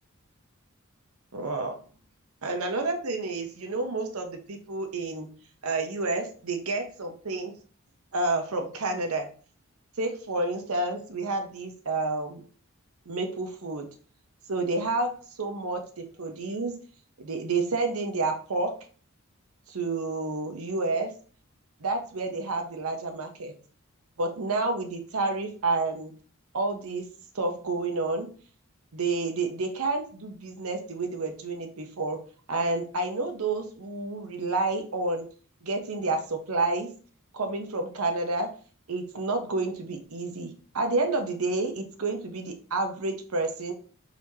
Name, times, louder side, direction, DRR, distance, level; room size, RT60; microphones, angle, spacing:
voice 1, 1.3-1.8 2.4-5.3 5.6-7.5 8.1-9.3 10.0-12.4 13.1-13.9 14.5-15.1 15.4-16.7 17.2-18.7 19.7-21.1 21.8-23.5 24.2-26.1 26.5-27.1 27.3-28.3 28.9-32.2 32.5-35.3 35.6-36.9 37.3-38.5 38.9-43.7, right 3 dB, 90° right, 5 dB, 0.8 m, -29 dB
4.6 x 4.1 x 2.8 m, 0.40 s
head